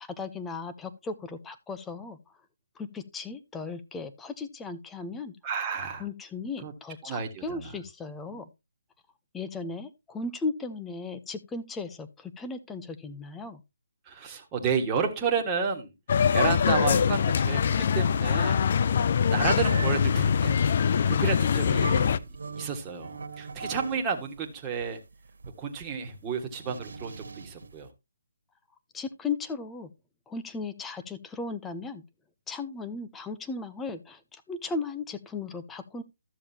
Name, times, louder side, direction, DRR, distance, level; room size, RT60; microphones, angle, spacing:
voice 1, 0.0-2.2 2.8-5.3 6.0-8.5 9.3-13.6 28.9-29.9 30.3-32.0 32.5-36.0, left 4 dB, 10° left, 10 dB, 0.7 m, -36 dB
voice 2, 5.4-6.0 6.6-6.7 7.0-7.7 8.3-8.4 14.0-15.9 16.3-18.6 19.1-22.2 22.5-25.0 25.6-27.9, right 5 dB, 15° right, 1 dB, 1.7 m, -31 dB
sound 1, 16.1-22.2, left 7 dB, 45° left, 0.4 m, -23 dB
sound 2, 19.6-24.0 24.4-27.7, right 4 dB, 80° right, 1.6 m, -39 dB
13.0 x 7.1 x 2.8 m, 0.23 s
hypercardioid pair, 160°, 0 cm